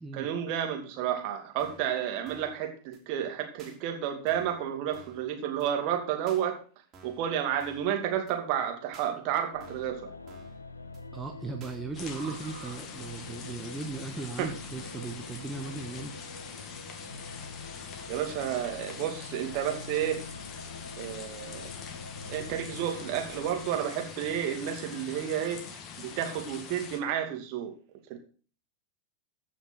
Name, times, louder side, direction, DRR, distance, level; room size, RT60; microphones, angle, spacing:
voice 1, 0.1-6.6 7.0-10.1 12.1-12.7 14.4-14.5 18.1-20.2 21.0-21.7 22.3-27.7 28.1-28.2, right 10 dB, 45° right, 4 dB, 2.5 m, -31 dB
sound 1, 1.6-1.9 2.3-2.6 2.9-3.0 3.6-3.8 4.3-4.6 4.9-5.3 5.6-5.7 6.3-6.4 6.9-7.3 7.6-7.9 8.3-8.4 8.9-9.1 9.6-9.9 10.3-10.6 10.9-11.0 11.6-11.8, right 3 dB, 30° right, 3.8 m, -53 dB
sound 2, 9.5-23.7, left 4 dB, 80° left, 0.9 m, -45 dB
voice 2, 11.1-16.1, right 4 dB, 10° right, 2 dB, 1.3 m, -37 dB
sound 3, 11.9-27.0, left 6 dB, 30° left, 1.8 m, -44 dB
15.0 x 5.9 x 5.7 m, 0.40 s
figure-of-eight pair, 90°, 0 cm